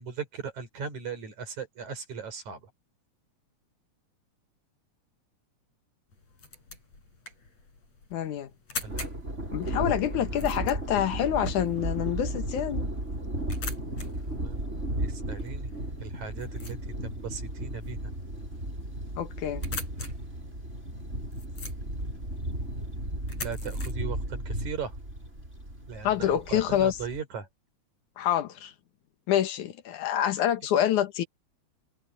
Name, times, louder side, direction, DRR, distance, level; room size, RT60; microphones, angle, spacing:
voice 1, 0.0-2.7 8.8-9.4 10.3-10.4 14.3-14.6 15.0-16.8 17.0-18.1 23.4-25.0 25.9-27.5, right 6 dB, 75° right, 6.0 m, -38 dB
sound 1, 6.1-23.9, left 4 dB, 60° left, 7.9 m, -45 dB
voice 2, 8.1-8.5 9.5-12.8 19.2-19.7 26.0-27.0 28.2-28.7 29.3-31.3, left 10 dB, 85° left, 2.8 m, -27 dB
Thunder, 8.8-27.2, right 1 dB, 20° right, 7.2 m, -35 dB
omnidirectional pair, 3.4 m